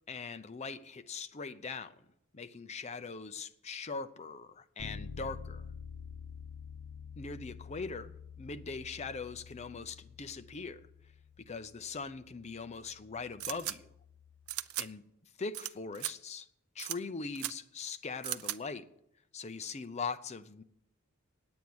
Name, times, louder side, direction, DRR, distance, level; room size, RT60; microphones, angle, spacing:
voice 1, 0.1-1.9 2.3-5.6 7.2-10.8 11.4-13.9 14.8-15.0 15.4-16.5 16.8-18.8 19.3-20.6, left 4 dB, 30° left, 0.5 m, -41 dB
Bass guitar, 4.8-14.6, left 5 dB, 85° left, 0.8 m, -49 dB
sound 1, 13.4-13.7 14.5-14.9 15.5-15.7 15.9-16.1 16.8-17.0 17.3-17.5 18.2-18.6, right 14 dB, 80° right, 0.4 m, -36 dB
9.5 x 8.7 x 7.8 m
head